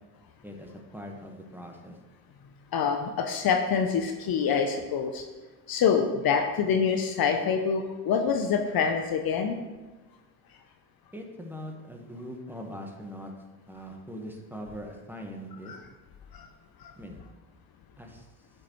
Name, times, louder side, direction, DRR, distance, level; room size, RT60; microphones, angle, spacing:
voice 1, 0.4-2.0 11.1-13.3 13.6-15.8 17.0-17.2 18.0-18.3, equal, 5° right, 1 dB, 1.5 m, -41 dB
voice 2, 2.7-5.2 5.7-9.6 15.7-15.8 16.3-16.5 16.8-16.9, left 6 dB, 50° left, 5 dB, 0.8 m, -26 dB
8.1 x 6.7 x 3.2 m, 1.2 s
hypercardioid pair, 55°, 47 cm